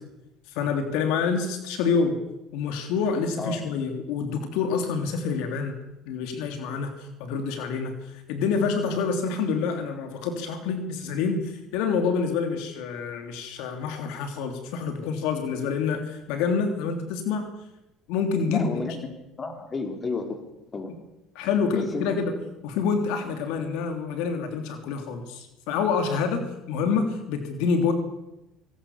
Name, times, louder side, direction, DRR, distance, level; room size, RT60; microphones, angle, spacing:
voice 1, 0.5-2.2 2.5-5.8 6.1-17.5 18.1-18.8 21.3-22.3 22.6-27.9, left 5 dB, 80° left, 6 dB, 3.2 m, -27 dB
voice 2, 18.5-19.0 19.4-20.4 20.7-20.9 21.7-22.1, left 4 dB, 30° left, 5 dB, 4.9 m, -31 dB
25.5 x 18.5 x 7.3 m, 0.92 s
supercardioid pair, 95°, 0 cm